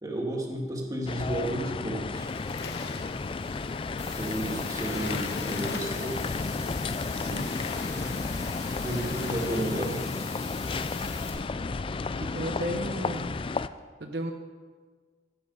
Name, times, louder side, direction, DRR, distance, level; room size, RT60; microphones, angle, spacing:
voice 1, 0.0-2.3 4.2-6.2 8.8-10.0, right 1 dB, 20° right, -1 dB, 2.2 m, -32 dB
sound 1, 1.1-13.7, left 4 dB, 30° left, 0.4 m, -32 dB
Waves surf, 2.1-9.6, left 3 dB, 70° left, 1.1 m, -42 dB
sound 2, 4.0-11.3, left 5 dB, 45° left, 4.6 m, -43 dB
voice 2, 7.2-7.5 12.2-13.3 14.0-14.3, equal, 70° right, 3 dB, 1.2 m, -34 dB
15.5 x 10.0 x 5.5 m, 1.5 s
head